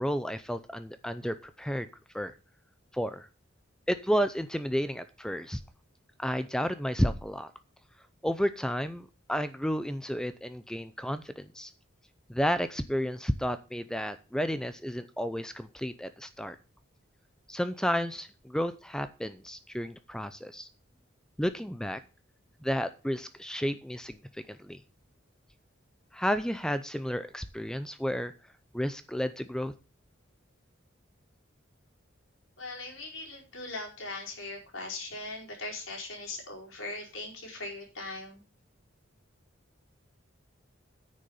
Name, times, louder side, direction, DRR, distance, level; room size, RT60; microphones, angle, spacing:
voice 1, 0.0-1.9 2.1-2.3 2.9-3.3 3.9-5.6 6.2-7.5 8.2-11.7 12.3-16.6 17.5-20.7 21.4-22.0 22.6-24.8 26.1-28.3 28.7-29.7, equal, 5° left, 11 dB, 0.5 m, -32 dB
voice 2, 32.6-38.4, left 2 dB, 80° left, 0 dB, 4.7 m, -40 dB
9.7 x 6.5 x 6.9 m, 0.33 s
head